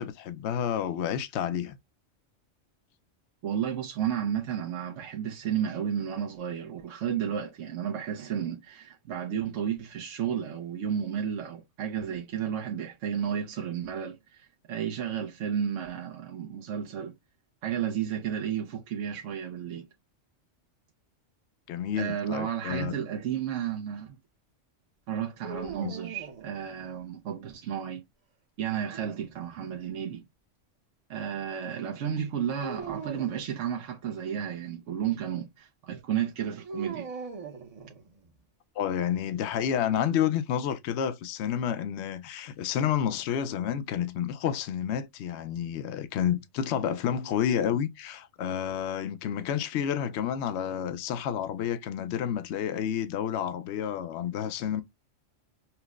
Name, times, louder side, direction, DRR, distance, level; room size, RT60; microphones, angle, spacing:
voice 1, 0.0-1.8 21.7-22.9 25.8-25.9 38.8-54.8, left 9 dB, 65° left, 0.8 m, -30 dB
voice 2, 3.4-17.1 17.6-19.9 21.9-24.2 25.1-28.0 28.6-30.2 31.1-37.1, right 9 dB, 80° right, 1.0 m, -32 dB
sound 1, 25.4-27.0 28.6-29.8 32.6-33.4 36.6-38.3, right 5 dB, 40° right, 0.6 m, -40 dB
5.6 x 2.0 x 2.3 m
omnidirectional pair, 1.3 m